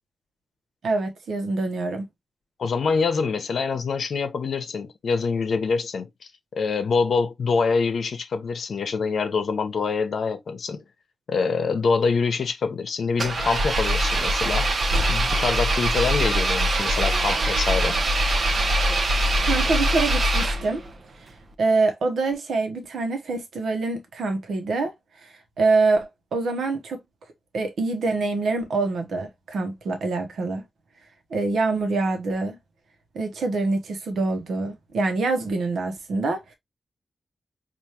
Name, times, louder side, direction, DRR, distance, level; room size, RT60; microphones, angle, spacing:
voice 1, 0.8-2.1 19.1-20.8 21.6-24.9 25.2-27.0 27.5-30.6 31.3-32.6 33.1-36.5, right 3 dB, 90° right, 1.0 m, -25 dB
voice 2, 2.6-6.1 6.5-10.8 11.3-14.7 15.1-18.0, left 5 dB, 75° left, 0.8 m, -25 dB
Engine, 13.2-20.9, right 1 dB, 55° right, 0.7 m, -23 dB
5.0 x 2.6 x 2.8 m
wide cardioid pair, 100°, 0 cm